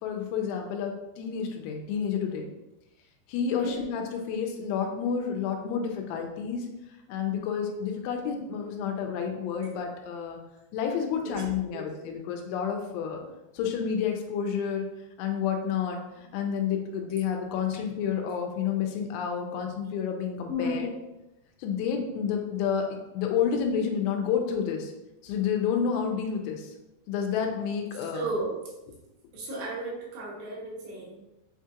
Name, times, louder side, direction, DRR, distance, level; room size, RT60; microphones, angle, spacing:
voice 1, 0.0-2.5 3.3-6.7 7.1-10.4 10.7-13.2 13.5-14.9 15.2-20.9 21.6-24.9 25.2-26.7 27.1-28.3, left 7 dB, 90° left, 3 dB, 3.0 m, -30 dB
voice 2, 3.6-3.9 11.2-11.5 11.7-12.1 20.5-20.9 28.1-28.5 29.3-31.2, equal, 75° right, -5 dB, 3.1 m, -34 dB
7.8 x 2.8 x 2.4 m, 0.96 s
omnidirectional pair, 5.3 m